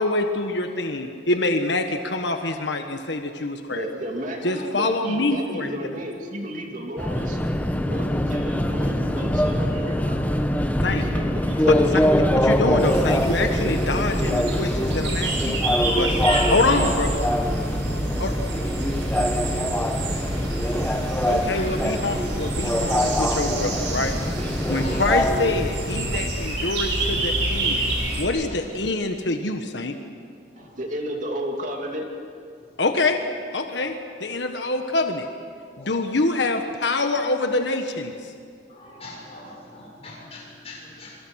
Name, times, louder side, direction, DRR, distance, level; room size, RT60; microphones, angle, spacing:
voice 1, 0.0-3.8 4.4-5.7 10.8-11.0 11.7-12.0 12.3-15.6 15.9-16.2 16.5-17.1 18.2-18.3 21.3-24.1 24.7-27.9 28.2-30.0 32.8-33.2 33.5-35.3 35.8-38.3, left 2 dB, 70° left, 5 dB, 1.4 m, -25 dB
voice 2, 3.7-7.4 7.9-12.0 30.6-32.1, equal, 45° right, 1 dB, 2.8 m, -33 dB
Subway metro underground, 7.0-26.2, equal, 10° left, 1.1 m, -24 dB
sound 1, 12.8-28.2, right 1 dB, 85° right, 5.6 m, -28 dB
voice 3, 15.8-16.9 20.7-20.9 21.5-21.7 22.7-22.8 24.6-25.1 30.6-30.8 33.8-33.9 35.8-36.0 38.7-41.2, left 2 dB, 35° left, -2 dB, 7.2 m, -37 dB
27.5 x 23.5 x 6.4 m, 2.3 s
head